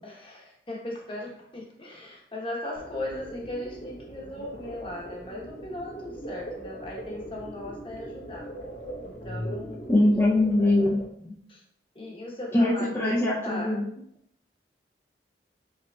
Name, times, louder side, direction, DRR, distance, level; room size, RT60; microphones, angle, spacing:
voice 1, 0.0-8.5 9.0-10.1 10.6-10.9 11.2-11.6 11.9-13.7, left 1 dB, 30° left, -2 dB, 1.1 m, -38 dB
sound 1, 2.7-11.0, right 1 dB, 50° left, 0.8 m, -40 dB
voice 2, 9.9-11.0 12.5-13.8, left 1 dB, 10° left, -8 dB, 0.6 m, -22 dB
5.0 x 4.3 x 2.3 m, 0.70 s
head